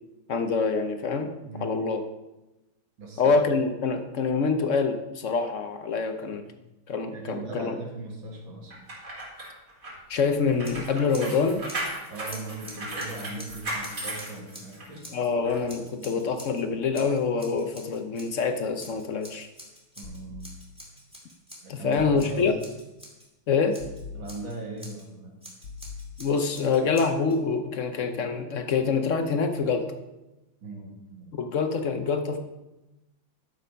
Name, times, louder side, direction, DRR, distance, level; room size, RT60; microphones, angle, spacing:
voice 1, 0.3-1.3 1.6-2.0 3.2-6.4 6.9-7.8 10.1-11.6 15.1-19.5 21.7-22.6 23.5-23.8 26.2-29.9 31.3-32.4, left 5 dB, 60° left, 7 dB, 0.8 m, -26 dB
voice 2, 1.4-1.8 3.0-3.4 6.3-6.4 7.1-8.7 12.1-15.1 16.0-16.2 20.0-20.6 21.6-22.5 24.1-25.4 30.6-31.3, right 3 dB, 75° right, 1 dB, 2.7 m, -39 dB
sound 1, 8.7-15.0 15.4-15.6, right 1 dB, 40° right, 3.6 m, -36 dB
Scissors, 10.6-11.4 11.6-15.3 15.7-16.6 16.9-18.4 18.8-23.3 23.7-25.0 25.4-27.4, equal, 5° right, 2.2 m, -47 dB
sound 2, 20.0-21.0 22.0-22.9 23.8-24.9 25.6-26.7, left 5 dB, 75° left, 1.7 m, -44 dB
12.0 x 6.8 x 5.2 m, 0.99 s
omnidirectional pair, 2.2 m